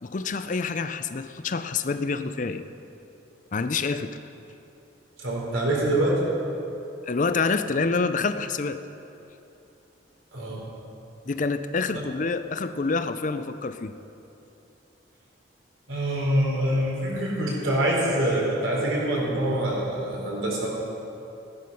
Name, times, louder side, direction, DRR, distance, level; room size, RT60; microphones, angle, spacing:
voice 1, 0.0-2.6 3.5-4.2 7.0-8.8 11.3-13.9, left 4 dB, 40° left, 11 dB, 0.5 m, -27 dB
voice 2, 5.2-6.2 10.3-10.6 11.9-12.0 15.9-20.7, right 1 dB, 90° right, -3 dB, 4.0 m, -25 dB
15.5 x 11.5 x 5.5 m, 2.9 s
head